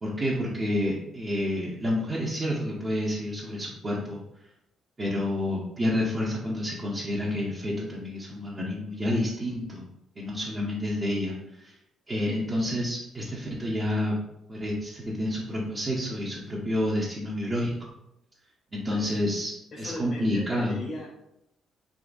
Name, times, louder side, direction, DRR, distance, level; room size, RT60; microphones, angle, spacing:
voice 1, 0.0-4.2 5.0-9.8 10.2-11.7 12.1-14.2 14.5-17.9 18.7-20.8, left 1 dB, 30° right, -5 dB, 0.7 m, -29 dB
voice 2, 19.7-21.1, left 2 dB, 50° left, -3 dB, 0.8 m, -38 dB
3.6 x 2.9 x 2.5 m, 0.83 s
cardioid pair, 90°, 0 cm